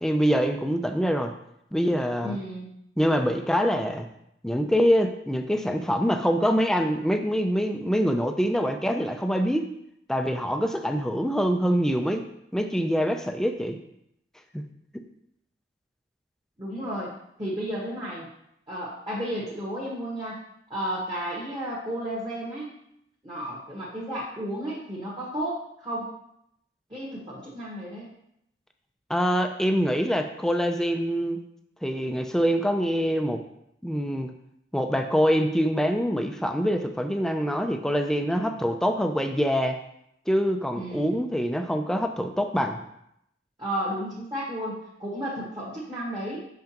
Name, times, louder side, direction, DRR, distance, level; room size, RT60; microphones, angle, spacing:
voice 1, 0.0-1.3 1.7-2.4 3.0-4.1 4.4-9.6 10.1-12.2 12.5-13.8 14.5-14.6 14.9-15.0 29.1-31.4 31.8-33.4 33.8-34.3 34.7-39.8 40.3-42.8, equal, 5° left, 5 dB, 0.4 m, -25 dB
voice 2, 2.2-2.7 16.6-17.1 17.4-18.3 18.7-20.4 20.7-22.7 23.2-26.2 26.9-28.1 38.2-38.5 40.7-41.2 43.6-46.4, equal, 25° right, -8 dB, 1.4 m, -33 dB
6.3 x 5.7 x 3.0 m, 0.77 s
head